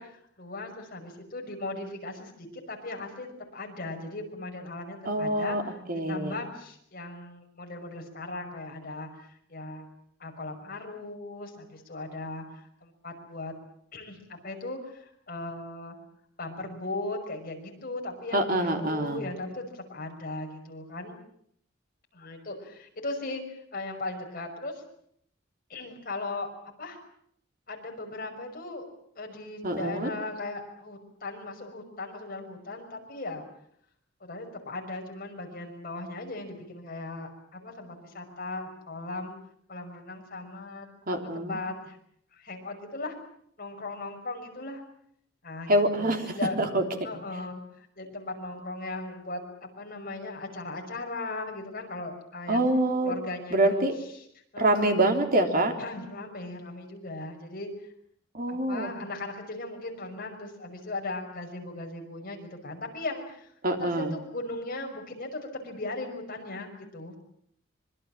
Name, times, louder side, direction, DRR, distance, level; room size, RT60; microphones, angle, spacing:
voice 1, 0.0-9.9 10.2-13.5 13.9-16.0 16.4-21.2 22.1-23.4 23.7-24.8 25.7-26.5 26.8-27.0 27.7-28.8 29.2-33.4 34.2-39.3 39.7-42.0 42.3-43.2 43.6-44.8 45.4-46.6 47.0-52.7 53.0-53.8 54.1-54.2 54.5-55.1 55.8-57.7 58.5-63.5 63.8-67.1, left 2 dB, 45° left, 2 dB, 5.8 m, -38 dB
voice 2, 5.0-5.6 5.9-6.3 18.3-19.2 29.6-30.1 41.1-41.6 45.7-46.8 52.5-53.1 53.5-53.9 54.6-55.7 58.3-58.9 63.6-64.1, right 1 dB, 45° right, 4 dB, 3.4 m, -25 dB
25.5 x 22.5 x 7.4 m, 0.69 s
head